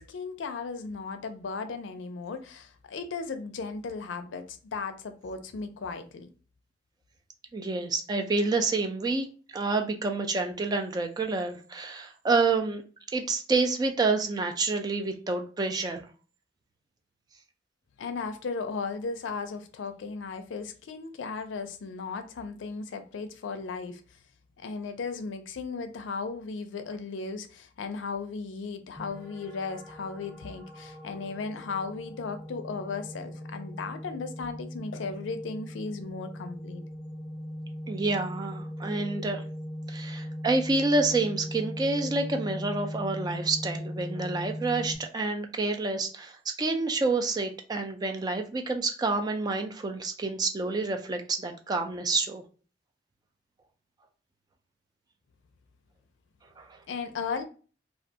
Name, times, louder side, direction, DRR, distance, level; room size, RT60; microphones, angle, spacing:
voice 1, 0.0-6.3 18.0-24.0 24.6-36.8 56.9-57.4, left 4 dB, 85° left, 0.4 m, -36 dB
voice 2, 7.5-9.3 9.5-12.8 13.1-16.0 37.9-39.4 39.9-52.4 56.6-56.8, right 3 dB, 20° right, 0.3 m, -28 dB
sound 1, 29.0-45.0, equal, 15° left, 0.6 m, -39 dB
2.4 x 2.2 x 2.7 m
head